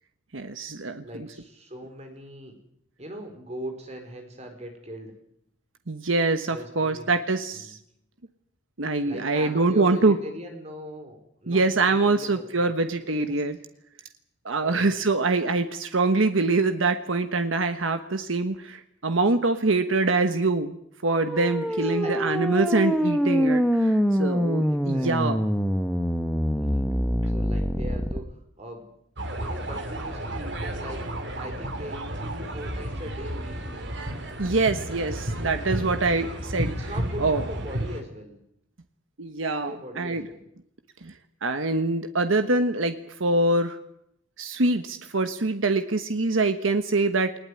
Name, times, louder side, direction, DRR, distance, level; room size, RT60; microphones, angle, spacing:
voice 1, 0.3-1.0 5.9-7.8 8.8-10.2 11.5-13.6 14.4-20.8 21.0-25.4 34.4-36.9 37.2-37.4 39.2-40.2 41.0-41.1 41.4-43.8 44.4-47.4, right 3 dB, 85° right, 8 dB, 1.3 m, -24 dB
voice 2, 1.0-2.5 3.0-5.1 6.5-7.1 7.5-7.7 9.0-13.4 14.6-14.9 21.7-22.4 24.7-25.3 26.5-26.9 27.3-28.3 28.6-28.8 29.4-31.0 31.4-33.8 36.7-38.4 39.6-40.5, equal, 35° right, 5 dB, 4.6 m, -40 dB
sound 1, 21.1-28.2, equal, ahead, 1.4 m, -25 dB
sound 2, 29.2-38.0, right 1 dB, 60° right, 3.2 m, -32 dB
20.0 x 19.0 x 9.7 m, 0.73 s
head